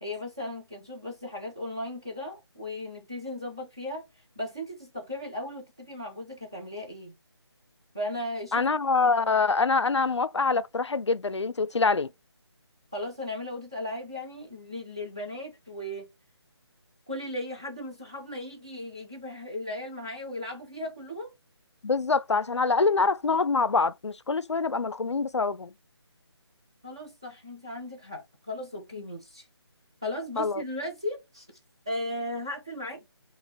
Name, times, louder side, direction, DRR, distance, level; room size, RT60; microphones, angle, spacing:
voice 1, 0.0-4.0 4.4-7.1 7.9-8.8 12.9-16.1 17.1-21.3 26.8-29.5 30.0-31.5 31.9-33.1, left 1 dB, 10° right, 0.3 m, -36 dB
voice 2, 8.5-12.1 21.8-25.7 30.4-30.6, left 4 dB, 80° left, 0.4 m, -25 dB
3.1 x 2.4 x 3.8 m
figure-of-eight pair, 155°, 14 cm